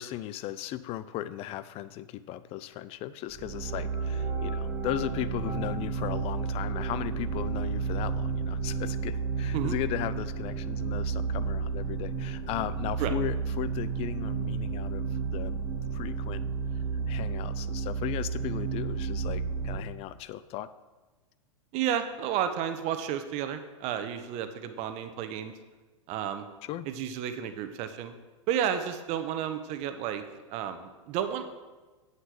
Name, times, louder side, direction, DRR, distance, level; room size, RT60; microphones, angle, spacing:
voice 1, 0.0-15.6 15.9-16.5 16.7-20.7 26.6-26.9, left 13 dB, 35° left, 15 dB, 0.6 m, -36 dB
sound 1, 3.3-19.8, right 5 dB, 15° right, 2.0 m, -32 dB
voice 2, 21.7-25.5 26.1-26.5 26.9-28.1 28.5-30.2 30.5-31.4, right 9 dB, 40° right, 9 dB, 1.1 m, -31 dB
8.4 x 8.0 x 6.1 m, 1.2 s
hypercardioid pair, 105°, 17 cm